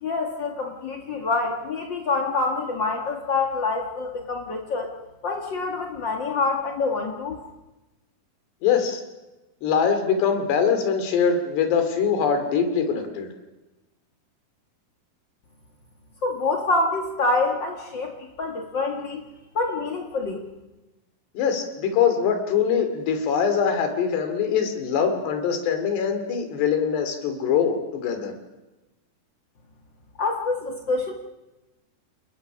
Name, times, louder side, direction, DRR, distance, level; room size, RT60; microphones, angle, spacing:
voice 1, 0.0-4.9 5.2-7.4 16.2-19.2 19.5-20.4 30.2-31.1, left 3 dB, 65° left, 2 dB, 1.1 m, -26 dB
voice 2, 8.6-9.0 9.6-13.3 21.3-28.3, left 7 dB, 90° left, 7 dB, 4.8 m, -23 dB
29.0 x 21.0 x 6.2 m, 1.1 s
omnidirectional pair, 4.7 m